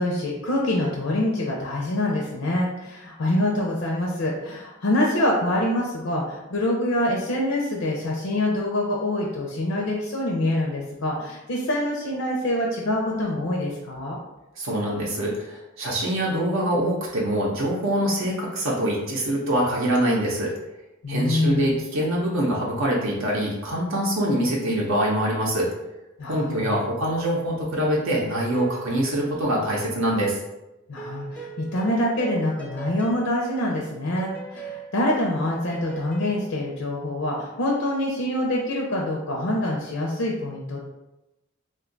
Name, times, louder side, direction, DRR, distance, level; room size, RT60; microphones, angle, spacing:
voice 1, 0.0-14.2 21.0-21.8 26.2-26.7 30.9-40.9, left 1 dB, 75° left, -2 dB, 0.5 m, -25 dB
voice 2, 14.6-20.5 21.1-25.7 26.2-30.4, right 1 dB, 65° right, -3 dB, 0.6 m, -24 dB
sound 1, 27.2-30.1 31.0-36.3, right 5 dB, 5° left, 0.3 m, -41 dB
2.5 x 2.2 x 3.8 m, 0.97 s
head